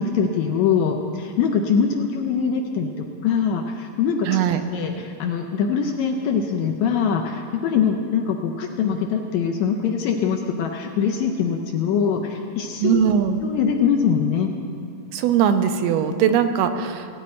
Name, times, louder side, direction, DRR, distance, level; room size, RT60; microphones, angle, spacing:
voice 1, 0.0-4.4 4.7-13.0 13.4-14.5, left 6 dB, 75° left, 3 dB, 1.8 m, -23 dB
voice 2, 4.3-4.6 12.8-13.4 15.1-17.1, right 8 dB, 85° right, 8 dB, 2.2 m, -20 dB
17.5 x 9.3 x 4.3 m, 2.5 s
omnidirectional pair, 3.8 m